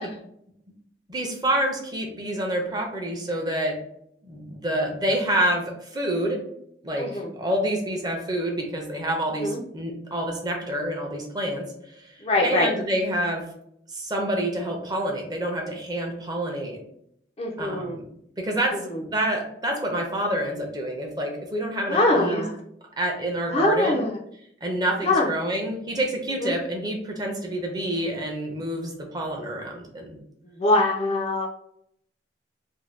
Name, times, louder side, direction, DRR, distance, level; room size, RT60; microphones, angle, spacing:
voice 1, 1.1-3.8 4.2-6.4 6.8-13.4 13.9-16.8 17.6-18.1 18.4-18.7 19.0-22.5 23.0-24.1 24.6-30.2, right 1 dB, 25° right, 1 dB, 0.5 m, -28 dB
voice 2, 7.0-7.3 9.4-9.6 12.2-12.7 17.4-18.0 18.8-19.0 21.9-22.6 23.5-24.2 25.0-25.3 26.4-26.5 30.6-31.5, left 2 dB, 35° left, 1 dB, 0.4 m, -23 dB
2.6 x 2.1 x 3.2 m, 0.72 s
head